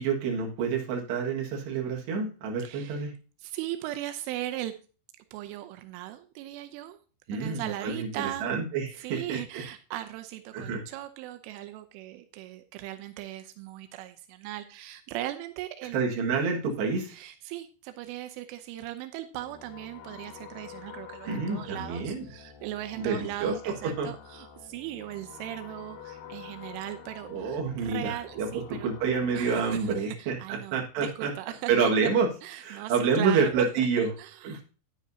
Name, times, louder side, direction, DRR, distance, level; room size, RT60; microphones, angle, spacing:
voice 1, 0.0-3.1 7.3-9.4 10.5-10.8 15.9-17.2 21.3-22.3 23.0-23.5 23.8-24.1 27.3-31.3 31.7-32.3 32.6-34.1 34.4-34.6, right 5 dB, 65° right, 0 dB, 3.7 m, -28 dB
voice 2, 2.6-3.0 3.4-4.7 5.3-7.0 7.3-8.5 9.0-16.0 17.1-28.9 29.3-31.9 32.4-34.6, right 14 dB, 90° right, 8 dB, 3.2 m, -38 dB
sound 1, 19.3-30.0, left 8 dB, 65° left, 2.3 m, -48 dB
10.0 x 10.0 x 2.8 m, 0.35 s
omnidirectional pair, 5.7 m